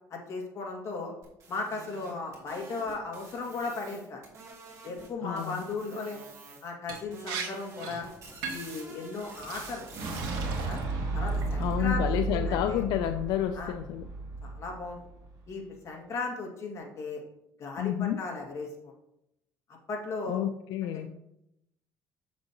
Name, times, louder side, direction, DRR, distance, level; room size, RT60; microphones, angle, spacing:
voice 1, 0.1-1.1 1.5-4.2 4.8-6.2 6.6-8.1 8.5-9.9 10.6-10.8 11.1-12.8 13.5-13.7 14.4-15.0 15.5-17.2 17.6-18.7 19.9-20.4 20.9-21.1, left 3 dB, 40° left, 0 dB, 2.0 m, -36 dB
sound 1, 1.2-5.1 5.4-6.7 7.0-10.3, right 3 dB, 45° right, 2.9 m, -48 dB
voice 2, 5.2-5.7 11.6-14.0 17.8-18.2 20.3-21.1, left 11 dB, 75° left, 8 dB, 0.4 m, -30 dB
Liquid, 6.9-7.0 7.3-7.5 7.8-8.0 8.4-8.8 9.4-9.6 10.0-10.9 11.3-11.7, right 5 dB, 90° right, 1.7 m, -38 dB
Boom, 9.5-15.4, right 3 dB, 65° right, 2.7 m, -33 dB
7.4 x 7.3 x 2.9 m, 0.81 s
cardioid pair, 135°, 7 cm